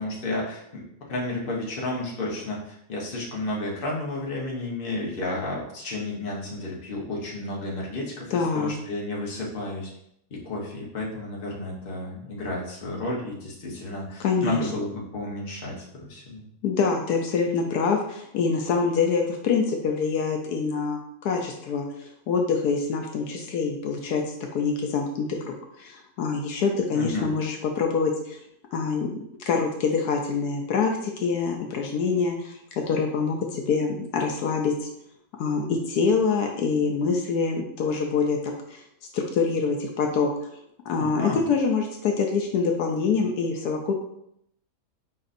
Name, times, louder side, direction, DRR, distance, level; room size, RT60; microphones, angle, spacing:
voice 1, 0.0-9.9 10.3-16.4 26.9-27.3 41.0-41.4, left 2 dB, 40° left, -3 dB, 1.2 m, -32 dB
voice 2, 8.3-8.7 14.2-14.6 16.6-24.2 24.5-28.4 28.7-34.9 35.4-38.8 39.1-40.3 40.9-43.9, left 5 dB, 80° left, 2 dB, 1.2 m, -25 dB
4.9 x 4.1 x 2.6 m, 0.74 s
omnidirectional pair, 1.7 m